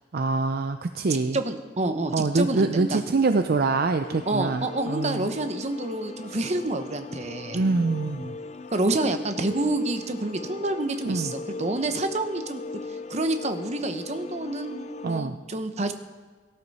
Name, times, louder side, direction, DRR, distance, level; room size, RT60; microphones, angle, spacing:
voice 1, 0.1-1.4 2.1-5.3 6.3-6.4 7.5-8.3 11.0-11.3 15.0-15.4, right 3 dB, 55° right, 8 dB, 0.5 m, -25 dB
voice 2, 1.3-3.0 4.3-7.6 8.7-12.6 12.9-15.9, right 2 dB, 35° right, 8 dB, 0.9 m, -28 dB
sound 1, 4.0-15.2, left 3 dB, 35° left, 0.4 m, -39 dB
17.5 x 11.5 x 4.2 m, 1.4 s
head